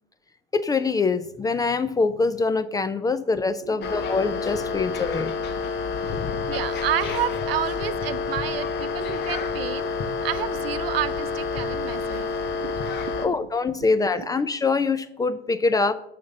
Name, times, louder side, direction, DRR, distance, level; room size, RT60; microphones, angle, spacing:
voice 1, 0.5-5.3 13.2-15.9, left 4 dB, 15° left, 14 dB, 0.4 m, -24 dB
sound 1, 3.8-13.3, left 5 dB, 35° left, 1.1 m, -28 dB
voice 2, 6.5-9.9 10.2-12.8 13.2-13.4 14.2-14.3, right 11 dB, 75° right, 13 dB, 0.7 m, -30 dB
6.3 x 5.9 x 6.4 m, 0.77 s
hypercardioid pair, 90°, 29 cm